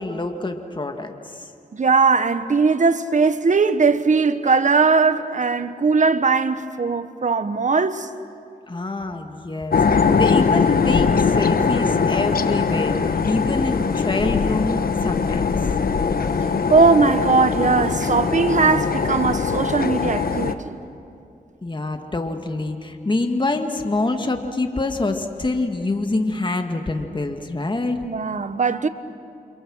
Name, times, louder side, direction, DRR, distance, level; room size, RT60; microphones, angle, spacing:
voice 1, 0.0-1.5 8.7-13.0 13.3-15.5 21.6-28.0, left 2 dB, 30° left, 1.9 m, -26 dB
voice 2, 1.7-8.1 16.7-20.8 28.0-28.9, right 4 dB, 50° right, 1.2 m, -19 dB
sound 1, 9.7-20.5, left 5 dB, 65° left, 1.2 m, -21 dB
29.0 x 26.5 x 6.4 m
cardioid pair, 60°, 16 cm